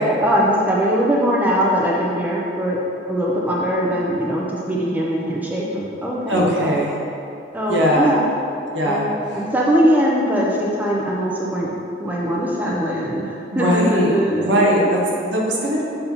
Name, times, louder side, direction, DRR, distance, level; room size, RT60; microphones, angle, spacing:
voice 1, 0.2-2.8 3.1-6.8 7.5-8.2 8.8-11.7 12.0-14.8, equal, 10° right, -4 dB, 0.6 m, -21 dB
voice 2, 6.3-6.9 7.7-8.1 8.7-9.1 9.3-9.4 13.5-15.8, equal, 75° right, -3 dB, 1.0 m, -20 dB
6.9 x 2.8 x 5.4 m, 2.6 s
head